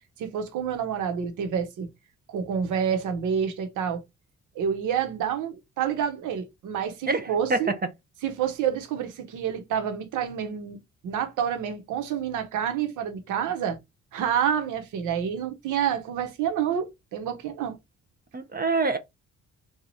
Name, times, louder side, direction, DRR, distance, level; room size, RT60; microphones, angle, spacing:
voice 1, 0.2-1.9 2.3-4.0 4.5-7.7 8.2-10.8 11.0-13.8 14.1-17.7, right 8 dB, 85° right, 1.0 m, -28 dB
voice 2, 7.1-7.7 18.3-19.0, right 3 dB, 30° right, 0.6 m, -26 dB
3.0 x 2.4 x 4.0 m
cardioid pair, 90°, 30 cm